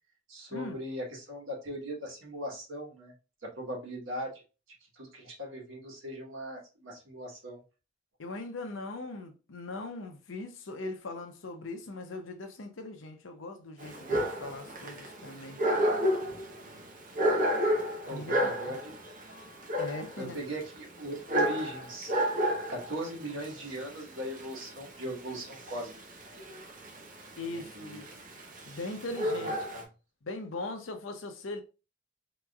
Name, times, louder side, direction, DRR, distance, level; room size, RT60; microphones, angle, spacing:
voice 1, 0.3-3.1 3.4-4.4 4.9-7.6 16.6-16.9 18.0-19.1 20.2-22.1 22.7-26.2 27.4-28.0 29.4-29.8, equal, 90° right, 1.3 m, -39 dB
voice 2, 8.2-15.6 18.1-18.8 19.8-20.4 27.4-28.1 28.7-29.5 30.2-31.6, left 2 dB, 85° left, 0.7 m, -40 dB
Dog, 13.8-29.8, equal, 45° right, 0.8 m, -32 dB
3.6 x 3.0 x 2.4 m
head